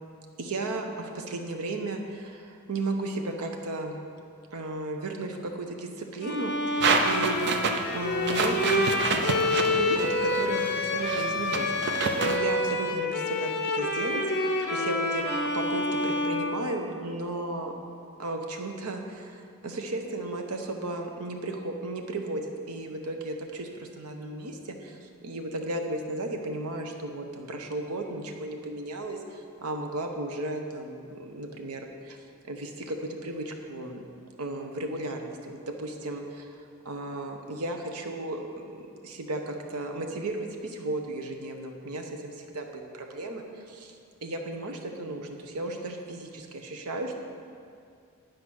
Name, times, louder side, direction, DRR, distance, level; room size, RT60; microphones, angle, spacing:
voice 1, 0.4-4.0 4.5-7.5 7.9-15.2 15.5-17.7 18.2-32.2 32.4-34.0 34.4-36.5 36.8-43.9 44.2-47.2, right 2 dB, 85° right, 3 dB, 0.9 m, -34 dB
Bowed string instrument, 6.2-17.2, left 2 dB, 50° left, 0.8 m, -28 dB
sound 1, 6.8-12.4, right 4 dB, 50° right, 0.6 m, -28 dB
10.0 x 4.7 x 6.3 m, 2.3 s
head